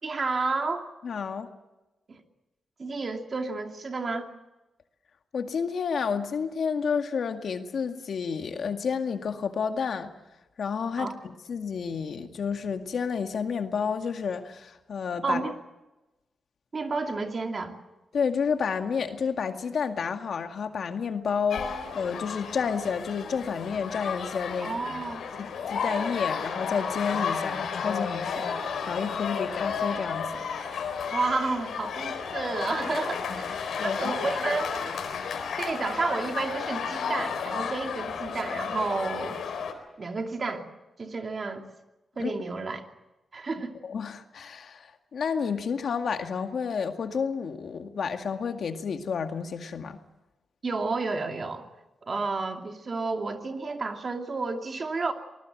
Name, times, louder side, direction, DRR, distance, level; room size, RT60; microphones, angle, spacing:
voice 1, 0.0-0.9 2.1-2.2 2.8-4.3 11.0-11.1 15.2-15.5 16.7-17.7 24.6-25.2 31.1-34.7 35.6-39.4 40.0-40.6 41.0-41.6 42.2-42.8 43.3-43.7 50.6-51.7 52.0-55.1, right 3 dB, 45° right, 4 dB, 2.8 m, -31 dB
voice 2, 1.0-1.5 5.3-10.1 10.6-15.4 18.1-25.0 25.4-30.4 33.3-33.4 33.8-34.1 42.2-42.3 43.8-50.0, left 6 dB, 70° left, 6 dB, 2.0 m, -30 dB
sound 1, 21.5-39.7, left 6 dB, 90° left, 4.2 m, -32 dB
24.5 x 20.0 x 7.8 m, 1.0 s
cardioid pair, 90°, 0 cm